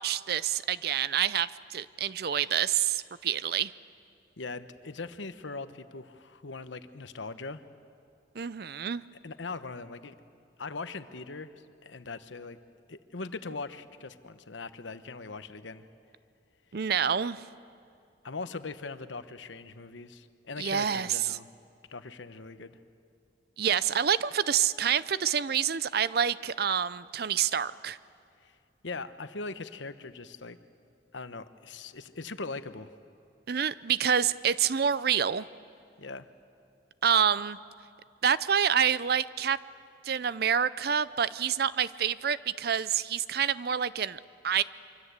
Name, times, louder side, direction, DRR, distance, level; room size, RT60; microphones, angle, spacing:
voice 1, 0.0-3.7 8.4-9.0 16.7-17.4 20.6-21.4 23.6-28.0 33.5-35.5 37.0-37.6 38.2-39.6 40.0-44.6, right 8 dB, 55° right, 17 dB, 0.5 m, -27 dB
voice 2, 4.4-7.6 9.2-10.1 10.6-12.6 12.9-15.8 18.2-21.5 21.9-22.8 28.4-28.5 28.8-30.6 31.1-32.9 36.0-36.3, left 3 dB, 80° left, 11 dB, 1.0 m, -40 dB
25.0 x 24.5 x 8.2 m, 2.4 s
head